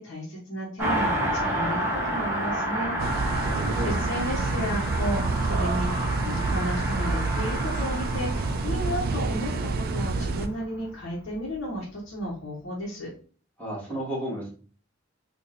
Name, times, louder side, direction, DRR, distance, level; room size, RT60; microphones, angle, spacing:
voice 1, 0.0-3.5 3.8-13.1, equal, 65° left, -6 dB, 1.1 m, -33 dB
Car passing by, 0.8-10.8 11.0-11.1, right 1 dB, 10° right, 1.3 m, -30 dB
sound 1, 3.0-10.5, right 3 dB, 50° right, 0.3 m, -28 dB
voice 2, 3.4-4.0 13.6-14.5, right 1 dB, 5° left, -7 dB, 1.8 m, -32 dB
4.1 x 2.6 x 2.6 m, 0.41 s
head